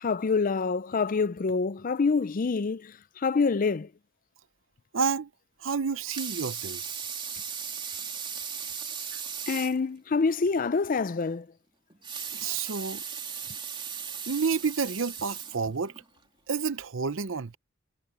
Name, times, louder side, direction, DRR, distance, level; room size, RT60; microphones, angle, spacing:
voice 1, 0.0-3.9 9.5-11.5, left 4 dB, 40° left, 0.5 m, -26 dB
voice 2, 4.9-5.3 5.6-6.8 9.1-9.2 12.3-13.0 14.3-15.9 16.5-17.6, right 5 dB, 65° right, 0.7 m, -29 dB
Water tap faucet / Sink (filling or washing) / Liquid, 5.9-9.8 10.3-10.4 10.7-10.8 11.9-16.0 16.6-16.7, right 7 dB, 25° right, 3.1 m, -37 dB
head